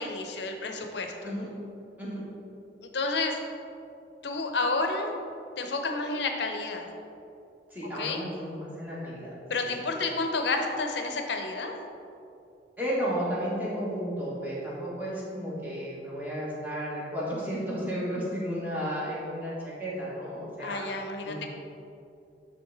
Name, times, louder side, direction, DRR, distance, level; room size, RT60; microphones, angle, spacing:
voice 1, 0.0-1.1 2.8-3.4 4.2-5.1 5.6-6.9 8.0-8.2 9.5-11.7 20.6-21.5, left 3 dB, 70° left, 4 dB, 0.6 m, -30 dB
voice 2, 7.7-9.3 9.6-9.7 12.8-20.9 21.2-21.5, equal, 10° right, -7 dB, 1.4 m, -33 dB
8.9 x 3.4 x 3.9 m, 2.6 s
head